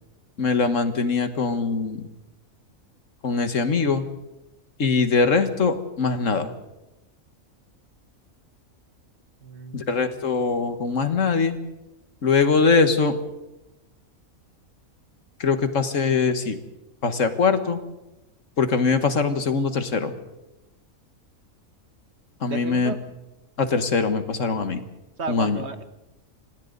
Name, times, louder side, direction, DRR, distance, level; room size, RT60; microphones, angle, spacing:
voice 1, 0.4-2.0 3.2-4.0 4.8-6.5 9.7-11.6 12.2-13.2 15.4-16.6 17.0-17.8 18.6-20.1 22.4-23.0 23.6-24.8 25.3-25.6, left 4 dB, 65° left, 9 dB, 1.8 m, -22 dB
voice 2, 9.4-10.0 22.5-23.0 25.2-25.9, right 4 dB, 55° right, 10 dB, 1.4 m, -33 dB
27.5 x 26.0 x 4.0 m, 0.98 s
omnidirectional pair, 1.4 m